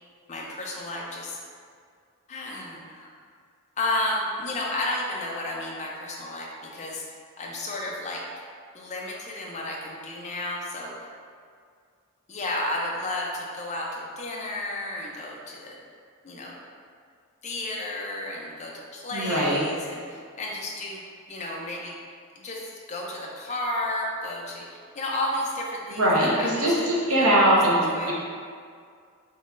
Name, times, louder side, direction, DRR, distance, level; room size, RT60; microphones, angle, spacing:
voice 1, 0.3-1.4 2.3-3.1 3.8-7.0 7.4-8.2 8.7-11.1 12.3-15.8 16.2-16.5 17.4-21.0 21.3-22.0 22.4-22.6 22.9-27.3 27.9-28.1, left 1 dB, 35° left, -2 dB, 0.6 m, -32 dB
voice 2, 19.1-19.6 26.0-28.1, right 1 dB, 75° right, -5 dB, 1.1 m, -21 dB
5.5 x 3.2 x 2.6 m, 2.1 s
head